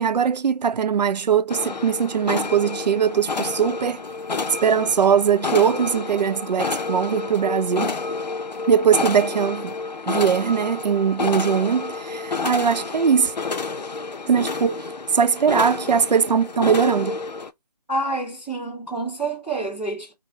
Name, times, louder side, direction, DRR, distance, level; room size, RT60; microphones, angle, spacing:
voice 1, 0.0-4.0 4.6-8.0 8.7-9.7 10.1-13.3 14.3-14.8 15.1-17.2, right 7 dB, 80° right, 0.4 m, -20 dB
sound 1, 1.5-17.5, left 4 dB, 90° left, 0.5 m, -29 dB
voice 2, 17.9-20.1, right 2 dB, ahead, 0.6 m, -28 dB
3.5 x 2.1 x 2.9 m
figure-of-eight pair, 160°, 21 cm